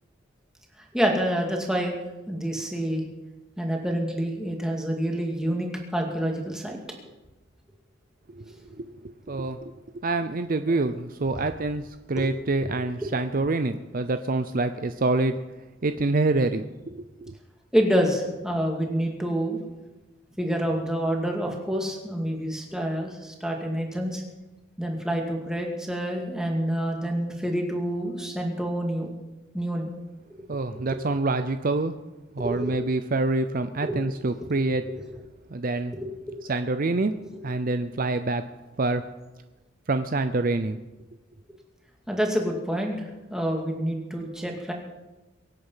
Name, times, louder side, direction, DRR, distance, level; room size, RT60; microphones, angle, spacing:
voice 1, 0.9-1.9 2.3-3.0 3.6-6.8 8.7-8.8 12.2-12.3 12.6-13.1 17.7-19.6 20.4-24.2 24.8-29.1 29.5-29.9 30.9-31.0 32.4-32.8 33.8-34.0 34.9-35.2 37.3-37.4 42.1-44.7, equal, 5° right, 0 dB, 2.3 m, -27 dB
voice 2, 8.8-15.3 15.8-17.3 30.5-31.9 32.3-34.8 35.5-35.9 36.5-37.1 37.4-38.4 38.8-39.0 39.9-40.8, right 2 dB, 45° right, 10 dB, 0.6 m, -26 dB
23.0 x 8.8 x 5.7 m, 1.1 s
head